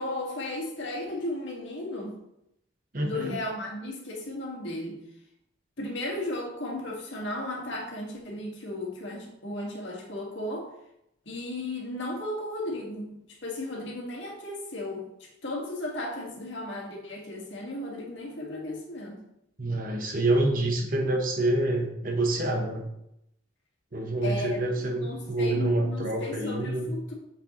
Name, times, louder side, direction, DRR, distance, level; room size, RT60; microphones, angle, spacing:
voice 1, 0.0-2.2 3.0-5.0 5.8-10.7 11.3-19.2 24.2-27.1, left 1 dB, 80° left, -1 dB, 1.8 m, -35 dB
voice 2, 2.9-3.4 19.6-22.9 23.9-26.9, right 2 dB, 45° right, 2 dB, 1.1 m, -27 dB
6.6 x 6.2 x 3.1 m, 0.80 s
head